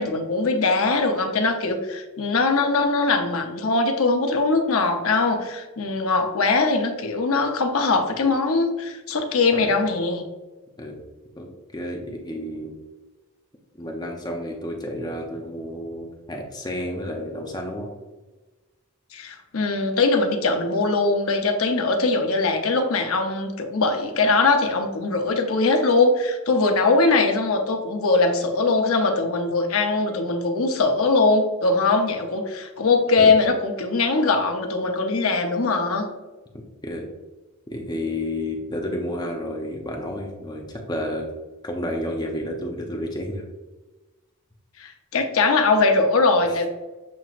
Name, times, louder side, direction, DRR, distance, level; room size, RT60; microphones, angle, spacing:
voice 1, 0.0-10.2 19.1-36.1 44.8-46.7, left 3 dB, 75° left, 4 dB, 0.7 m, -21 dB
voice 2, 11.4-12.7 13.8-17.9 33.2-33.3 36.8-37.1 37.7-41.3 41.6-43.4 46.5-46.6, left 1 dB, 20° left, 1 dB, 0.6 m, -31 dB
7.3 x 3.0 x 2.5 m, 1.2 s
head